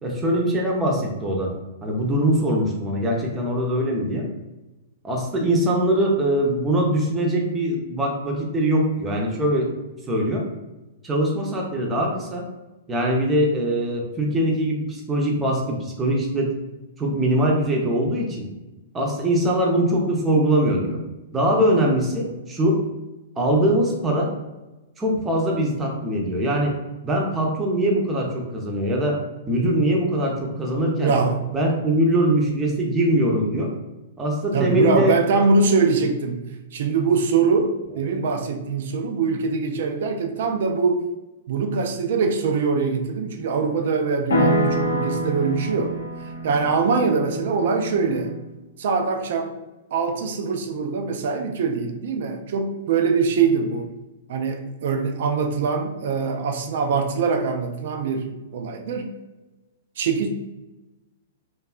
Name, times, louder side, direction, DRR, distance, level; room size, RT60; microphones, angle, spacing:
voice 1, 0.0-1.5 1.8-4.3 5.0-9.7 10.1-10.4 11.0-12.5 12.9-16.5 17.0-18.5 18.9-21.0 21.3-22.8 23.4-24.3 25.0-26.8 27.0-29.2 29.5-31.1 31.5-33.7 34.2-35.1, right 1 dB, 20° right, -1 dB, 0.6 m, -22 dB
voice 2, 31.0-31.4 34.5-36.5 36.7-41.1 41.5-46.0 46.4-48.3 48.8-49.5 49.9-53.9 54.3-59.1 60.0-60.3, right 4 dB, 60° right, 5 dB, 0.3 m, -23 dB
sound 1, 44.3-48.4, equal, 75° left, 0.5 m, -26 dB
2.6 x 2.2 x 2.3 m, 1.1 s
figure-of-eight pair, 110°, 0 cm